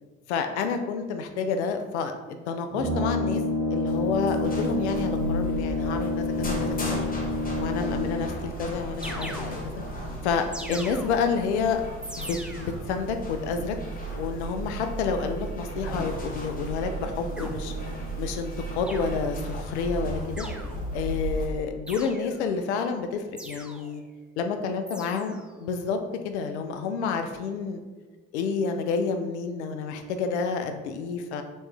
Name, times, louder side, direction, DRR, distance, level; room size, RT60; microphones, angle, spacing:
voice 1, 0.3-2.1 2.5-3.4 3.7-7.0 7.6-9.6 10.2-11.8 12.2-13.8 14.2-17.7 18.2-20.5 20.9-24.0 24.4-26.0 26.2-27.8 28.3-31.4, left 5 dB, 85° left, 6 dB, 0.5 m, -29 dB
Brass instrument, 2.7-8.5, left 2 dB, 40° right, 0.8 m, -28 dB
sound 1, 3.9-21.4, right 1 dB, 25° left, 1.0 m, -35 dB
sound 2, 7.8-8.4 9.0-9.9 10.5-11.5 12.0-12.9 15.9-16.4 17.4-18.1 18.9-19.5 20.4-21.1 21.9-22.5 23.4-24.1 24.9-25.5, equal, 5° right, 0.5 m, -41 dB
3.1 x 3.1 x 3.2 m, 1.3 s
hypercardioid pair, 60°, 33 cm